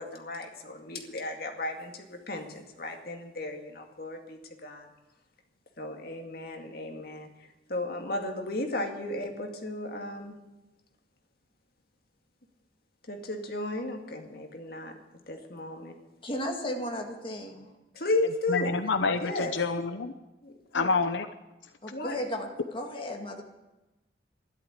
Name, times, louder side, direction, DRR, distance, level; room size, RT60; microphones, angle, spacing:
voice 1, 0.0-4.9 5.8-7.3 7.7-10.3 13.1-15.0 15.3-15.9 17.9-18.8 19.2-19.6 20.4-20.9 21.9-22.2, left 2 dB, 55° left, 4 dB, 2.2 m, -34 dB
voice 2, 16.2-17.7 21.8-23.4, left 1 dB, 30° left, 2 dB, 2.2 m, -35 dB
voice 3, 18.5-20.1 20.7-21.3, left 4 dB, 85° left, 9 dB, 0.8 m, -27 dB
13.0 x 11.5 x 8.3 m, 1.0 s
head